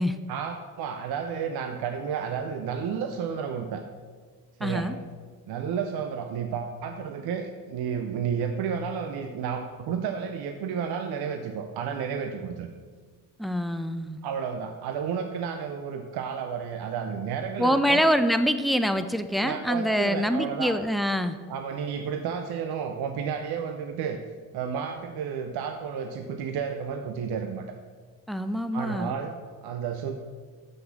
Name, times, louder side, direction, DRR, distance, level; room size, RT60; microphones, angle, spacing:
voice 1, 0.3-3.8 4.6-4.9 5.5-12.7 14.2-18.1 19.4-20.7 21.5-24.2 24.5-27.7 28.7-29.4 29.6-30.1, right 7 dB, 65° right, 6 dB, 0.6 m, -31 dB
voice 2, 4.6-4.9 13.4-14.2 17.6-21.4 28.3-29.2, equal, ahead, 9 dB, 0.4 m, -25 dB
6.2 x 4.9 x 5.9 m, 1.5 s
hypercardioid pair, 55°, 42 cm